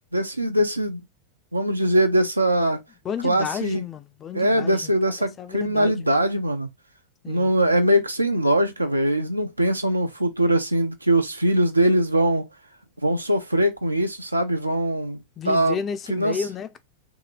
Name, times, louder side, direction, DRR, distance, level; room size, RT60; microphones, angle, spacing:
voice 1, 0.1-1.0 1.5-2.8 3.2-3.8 4.3-6.7 7.3-12.4 13.0-15.8 16.1-16.4, right 1 dB, 85° right, 0.5 m, -22 dB
voice 2, 3.0-4.9 5.2-6.0 7.2-7.5 15.4-16.8, left 7 dB, 25° left, 0.4 m, -32 dB
2.8 x 2.8 x 2.4 m
figure-of-eight pair, 90°, 0 cm